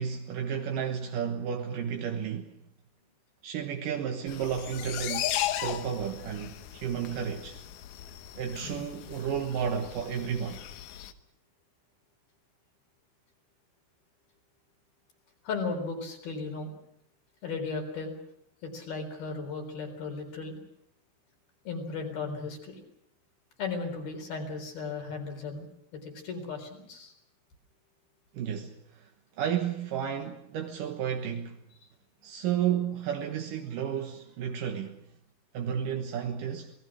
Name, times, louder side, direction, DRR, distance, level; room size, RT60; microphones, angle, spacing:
voice 1, 0.0-2.6 3.4-7.6 8.4-10.7 28.3-29.1 29.4-31.6 32.2-35.0 35.5-36.7, right 8 dB, 65° right, 2.2 m, -32 dB
sound 1, 4.3-11.1, left 12 dB, 85° left, 1.8 m, -37 dB
voice 2, 15.4-16.7 17.4-18.1 18.6-20.6 21.7-22.8 23.6-25.7 26.0-27.1, left 4 dB, 55° left, 5.8 m, -35 dB
29.5 x 19.5 x 6.3 m
omnidirectional pair, 5.5 m